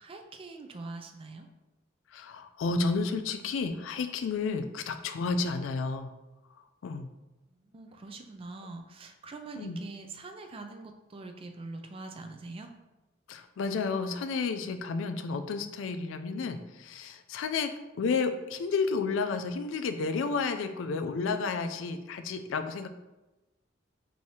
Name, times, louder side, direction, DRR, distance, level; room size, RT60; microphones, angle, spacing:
voice 1, 0.0-1.5 7.5-12.7, right 3 dB, 30° right, 5 dB, 0.3 m, -44 dB
voice 2, 2.1-6.1 6.8-7.1 9.6-9.8 13.3-22.9, left 4 dB, 75° left, 9 dB, 0.3 m, -31 dB
4.7 x 2.7 x 2.8 m, 1.0 s
head